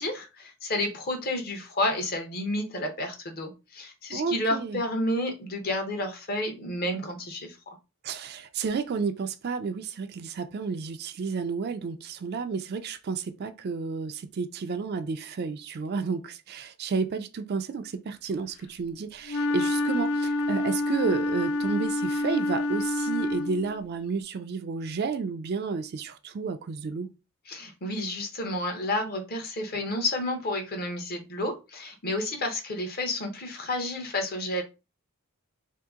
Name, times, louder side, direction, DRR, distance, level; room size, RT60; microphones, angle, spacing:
voice 1, 0.0-7.6 27.5-34.6, left 1 dB, 45° left, 0.8 m, -30 dB
voice 2, 4.1-4.8 8.0-27.1, right 5 dB, 45° right, 0.4 m, -31 dB
Wind instrument woodwind instrument, 19.3-23.8, left 2 dB, 80° left, 0.4 m, -27 dB
2.8 x 2.6 x 3.5 m
head